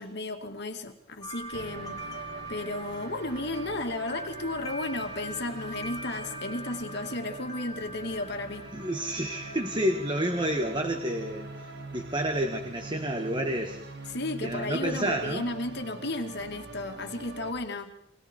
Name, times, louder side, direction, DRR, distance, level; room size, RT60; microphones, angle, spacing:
voice 1, 0.0-2.1 2.5-8.7 14.1-17.9, left 2 dB, 50° left, 5 dB, 2.3 m, -34 dB
sound 1, 1.2-10.7, right 1 dB, 15° left, 2.4 m, -43 dB
sound 2, 1.5-17.5, right 3 dB, 50° right, 2.8 m, -43 dB
voice 2, 8.7-13.8 14.4-15.5, right 1 dB, 20° right, 5 dB, 1.7 m, -30 dB
30.0 x 23.5 x 4.6 m, 0.70 s
head